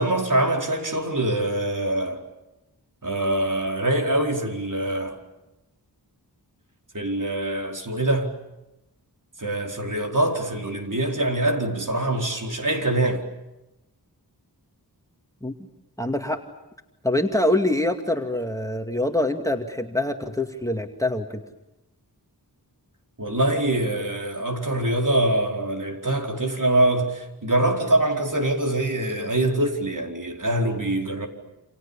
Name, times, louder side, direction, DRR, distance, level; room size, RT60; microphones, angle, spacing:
voice 1, 0.0-2.2 3.0-5.2 6.9-8.3 9.4-13.3 23.2-31.3, right 1 dB, 50° right, 4.9 m, -24 dB
voice 2, 16.0-16.4 17.0-21.4, left 1 dB, 10° left, 2.4 m, -25 dB
29.0 x 27.5 x 7.2 m
wide cardioid pair, 65°, 40 cm